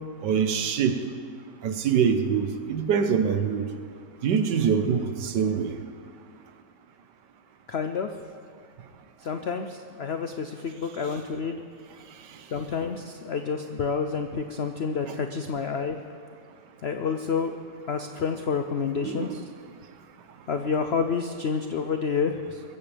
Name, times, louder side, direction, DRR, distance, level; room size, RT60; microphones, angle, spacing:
voice 1, 0.2-0.9 1.6-3.6 4.2-5.8 19.0-19.4, right 7 dB, 70° right, 7 dB, 1.5 m, -24 dB
voice 2, 7.7-8.1 9.2-11.6 12.5-16.0 16.8-17.6 17.9-19.4 20.5-22.6, left 5 dB, 85° left, 6 dB, 0.5 m, -29 dB
22.5 x 14.5 x 3.4 m, 2.2 s
omnidirectional pair, 1.9 m